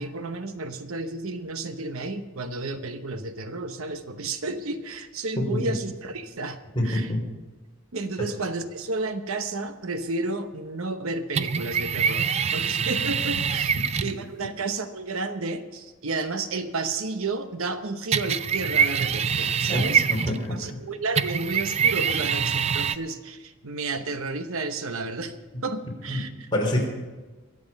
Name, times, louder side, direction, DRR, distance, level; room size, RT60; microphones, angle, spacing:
voice 1, 0.0-6.6 6.8-7.1 7.9-20.0 20.5-25.4 25.6-26.5, right 3 dB, 80° right, 9 dB, 1.0 m, -32 dB
voice 2, 5.4-5.7 6.8-7.2 19.7-20.4 26.1-26.2 26.5-26.8, left 1 dB, 20° left, -1 dB, 3.5 m, -26 dB
sound 1, 11.4-14.2 18.1-20.6 21.2-23.0, right 7 dB, 30° right, 0.3 m, -25 dB
23.0 x 7.7 x 5.3 m, 1.3 s
head